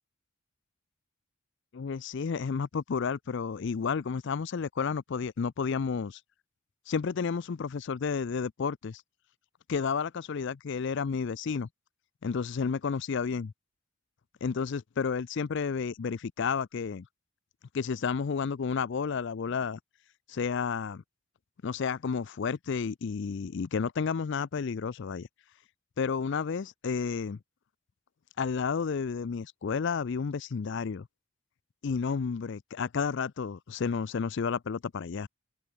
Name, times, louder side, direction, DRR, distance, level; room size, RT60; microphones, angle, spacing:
voice 1, 1.7-6.2 6.9-9.0 9.7-11.7 12.2-13.5 14.4-17.1 17.7-19.8 20.3-21.0 21.6-25.3 26.0-27.4 28.4-31.1 31.8-35.3, left 5 dB, 50° left, 0.4 m, -31 dB
head